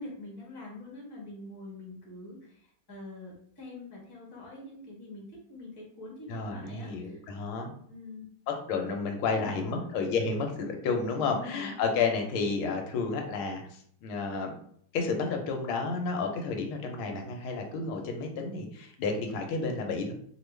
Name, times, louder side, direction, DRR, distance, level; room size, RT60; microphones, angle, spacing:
voice 1, 0.0-7.2 7.9-8.3 9.3-9.9 11.2-11.9, left 2 dB, 25° left, -4 dB, 0.5 m, -45 dB
voice 2, 6.3-7.7 8.5-14.5 14.9-20.1, left 4 dB, 90° left, 3 dB, 1.5 m, -31 dB
3.3 x 2.3 x 3.2 m, 0.64 s
omnidirectional pair, 2.3 m